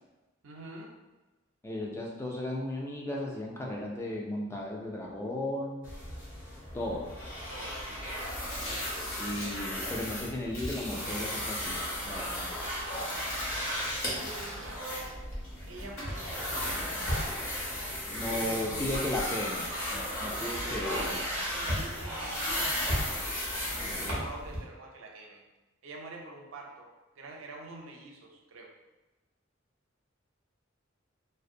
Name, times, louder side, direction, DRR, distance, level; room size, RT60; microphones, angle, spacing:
voice 1, 0.4-1.0 7.5-8.1 14.1-15.2 15.7-17.0 18.2-19.1 20.4-23.9 24.1-25.4 25.8-26.9 27.2-28.7, right 2 dB, 75° right, 0 dB, 0.5 m, -45 dB
voice 2, 1.6-5.9 6.7-7.1 8.6-8.8 9.2-12.5 18.1-19.7 20.2-21.2, left 1 dB, 15° left, -2 dB, 0.3 m, -35 dB
sound 1, 5.8-24.6, equal, 40° left, 0.8 m, -35 dB
sound 2, 8.3-9.5 10.5-11.7 12.9-15.5 16.0-16.2 16.6-16.8, left 1 dB, 85° left, 0.8 m, -42 dB
2.5 x 2.1 x 2.6 m, 1.1 s
head